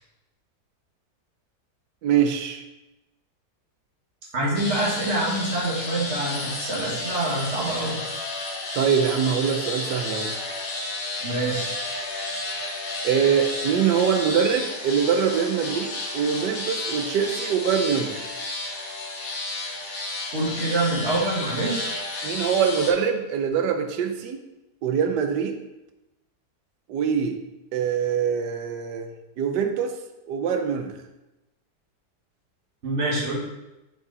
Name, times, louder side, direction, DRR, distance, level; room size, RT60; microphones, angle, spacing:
voice 1, 2.0-2.6 8.7-10.3 13.0-18.3 22.2-24.4 24.8-25.6 26.9-27.4 27.7-29.1 29.4-30.0 30.3-30.9, right 7 dB, 85° right, 7 dB, 1.4 m, -23 dB
voice 2, 4.3-8.0 11.2-11.7 20.3-22.0 32.8-33.4, right 2 dB, 40° right, -5 dB, 2.0 m, -26 dB
sound 1, 4.6-22.9, left 2 dB, 85° left, 1.9 m, -32 dB
6.7 x 4.7 x 4.0 m, 0.98 s
omnidirectional pair, 1.8 m